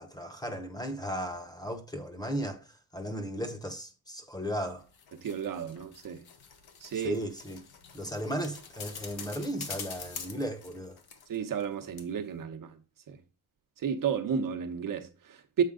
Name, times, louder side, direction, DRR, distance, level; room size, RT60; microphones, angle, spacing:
voice 1, 0.0-4.9 6.9-7.6 7.9-11.0, equal, 10° left, 0.9 m, -36 dB
sound 1, 4.7-11.7 12.0-12.1, left 6 dB, 75° left, 1.3 m, -45 dB
voice 2, 5.2-6.2 6.8-7.2 11.3-12.8 13.1-13.2 13.8-15.6, right 7 dB, 60° right, 1.0 m, -32 dB
7.4 x 4.6 x 3.7 m
cardioid pair, 135°, 38 cm